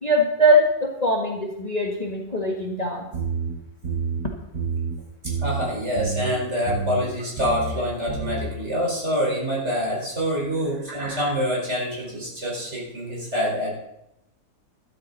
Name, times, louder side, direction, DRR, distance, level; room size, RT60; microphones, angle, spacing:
voice 1, 0.0-3.1, equal, 25° left, 0 dB, 1.5 m, -21 dB
sound 1, 3.1-3.5 3.8-4.2 4.5-4.9 5.2-5.6 6.0-6.3 6.7-7.0 7.4-7.7 8.1-8.4, right 5 dB, 90° right, 7.1 m, -28 dB
voice 2, 5.4-13.7, equal, 45° right, -4 dB, 5.2 m, -26 dB
13.0 x 13.0 x 4.1 m, 0.86 s
omnidirectional pair, 1.7 m